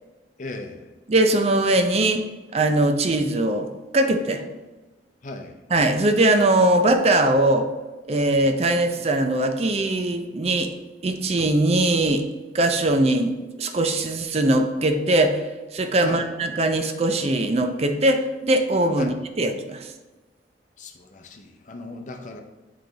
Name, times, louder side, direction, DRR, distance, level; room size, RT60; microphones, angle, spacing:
voice 1, 0.4-0.9 5.2-5.5 16.0-16.3 19.0-19.2 20.8-22.4, left 2 dB, 45° left, 5 dB, 0.6 m, -36 dB
voice 2, 1.1-2.2 2.5-3.7 3.9-4.4 5.7-7.7 8.1-10.7 11.0-12.2 12.5-15.4 15.7-19.9, right 1 dB, 35° right, 6 dB, 0.5 m, -21 dB
8.2 x 3.3 x 3.8 m, 1.2 s
head